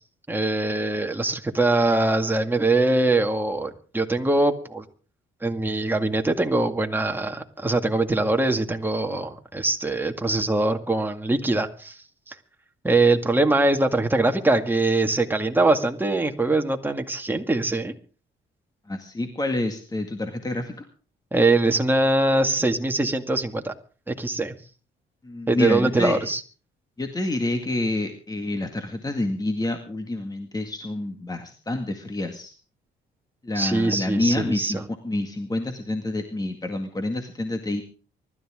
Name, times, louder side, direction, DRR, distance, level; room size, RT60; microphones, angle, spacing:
voice 1, 0.3-4.8 5.4-12.0 12.3-12.4 12.8-17.9 21.3-23.7 24.1-24.5 25.5-26.4 33.6-34.8, right 2 dB, 10° right, 4 dB, 2.1 m, -22 dB
voice 2, 18.9-20.9 25.2-26.3 27.0-32.5 33.4-37.8, left 2 dB, 20° left, 5 dB, 2.0 m, -28 dB
24.5 x 13.0 x 3.7 m, 0.39 s
cardioid pair, 90°, 20 cm